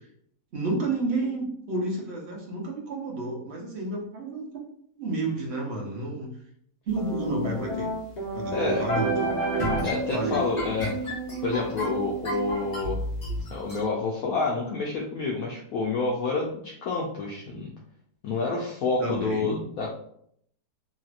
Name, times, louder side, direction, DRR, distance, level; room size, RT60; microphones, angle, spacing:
voice 1, 0.5-4.7 5.0-6.3 6.9-7.9 8.3-9.1 9.8-9.9 10.1-10.4 19.0-19.6, right 2 dB, 50° right, -1 dB, 0.9 m, -30 dB
sound 1, 7.0-13.8, right 1 dB, 30° left, 0.8 m, -30 dB
voice 2, 8.5-8.8 9.8-10.9 11.4-13.0 13.5-17.7 18.2-19.9, left 3 dB, 70° left, -2 dB, 0.9 m, -28 dB
3.1 x 2.8 x 2.4 m, 0.68 s
omnidirectional pair, 1.8 m